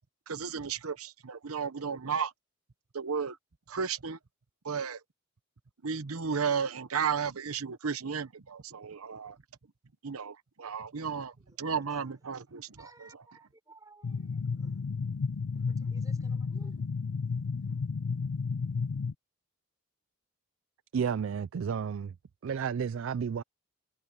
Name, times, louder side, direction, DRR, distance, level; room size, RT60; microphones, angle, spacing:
voice 1, 0.3-2.3 2.9-3.4 3.7-4.2 4.6-5.0 5.8-9.4 10.0-13.1, right 6 dB, 90° right, 0.9 m, -34 dB
voice 2, 11.4-12.1 12.5-14.9 15.5-16.8 17.6-17.8, right 2 dB, 15° right, 4.5 m, -59 dB
sound 1, 14.0-19.1, left 5 dB, 85° left, 0.5 m, -32 dB
voice 3, 20.9-22.1 22.4-23.4, right 7 dB, 65° right, 0.4 m, -31 dB
head